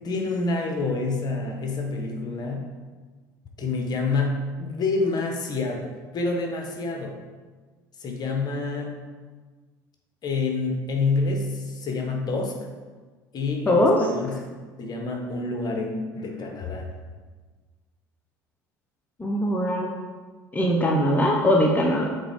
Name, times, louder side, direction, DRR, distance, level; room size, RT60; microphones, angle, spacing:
voice 1, 0.0-2.7 3.6-7.2 8.0-8.9 10.2-12.6 13.3-14.4 14.8-16.9, left 3 dB, 45° left, 2 dB, 1.2 m, -27 dB
voice 2, 13.7-14.0 19.2-19.9 20.5-22.1, left 1 dB, 15° left, -1 dB, 0.9 m, -21 dB
7.9 x 3.7 x 3.6 m, 1.4 s
hypercardioid pair, 70°, 10 cm